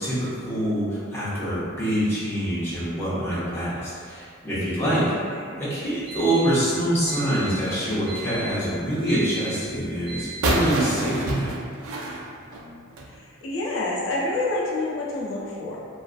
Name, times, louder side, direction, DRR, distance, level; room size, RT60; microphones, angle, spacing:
voice 1, 0.0-5.1 5.6-11.5, right 1 dB, 15° left, -11 dB, 0.7 m, -25 dB
voice 2, 5.1-5.6 13.1-15.8, left 2 dB, 75° left, -5 dB, 0.5 m, -28 dB
Alarm, 5.8-10.8, right 3 dB, 60° right, 0.9 m, -38 dB
sound 1, 10.4-13.1, right 1 dB, 85° right, 0.4 m, -26 dB
2.4 x 2.4 x 2.3 m, 2.2 s
head